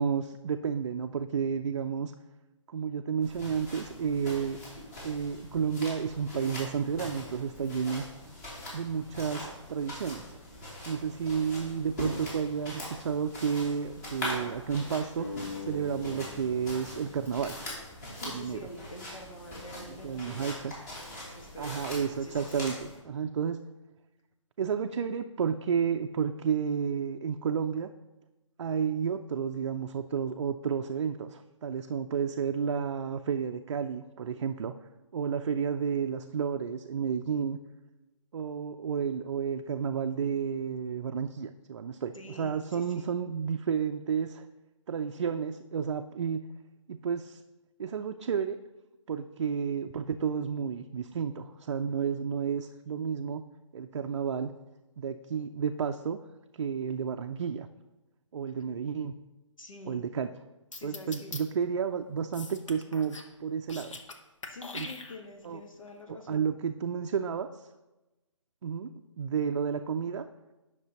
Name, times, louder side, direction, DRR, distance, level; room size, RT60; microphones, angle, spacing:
voice 1, 0.0-2.1 2.7-4.6 5.0-8.0 8.7-10.4 10.9-15.3 15.6-17.6 18.2-18.7 19.9-20.7 21.6-23.6 24.6-27.9 28.6-34.7 35.1-37.6 38.3-44.5 44.9-46.4 46.9-47.4 47.8-48.6 49.1-53.4 53.7-54.5 55.0-56.2 56.5-57.7 58.3-59.1 59.9-60.3 60.8-64.0 64.7-64.9 65.4-65.6 66.1-67.7 68.6-70.3, right 7 dB, 55° right, 6 dB, 0.4 m, -31 dB
sound 1, 3.2-23.0, left 1 dB, 30° left, 2.9 m, -42 dB
sound 2, 15.2-18.4, left 4 dB, 5° left, 1.6 m, -43 dB
voice 2, 18.1-20.7 21.3-21.9 22.2-22.7 42.1-43.1 59.6-60.0 60.7-61.3 64.4-66.5, left 2 dB, 85° left, 3 dB, 1.4 m, -47 dB
sound 3, 60.7-61.4 62.3-63.3 63.6-64.2 64.4-65.5, left 3 dB, 70° left, 1.0 m, -42 dB
10.0 x 6.0 x 2.9 m, 1.1 s
figure-of-eight pair, 145°, 17 cm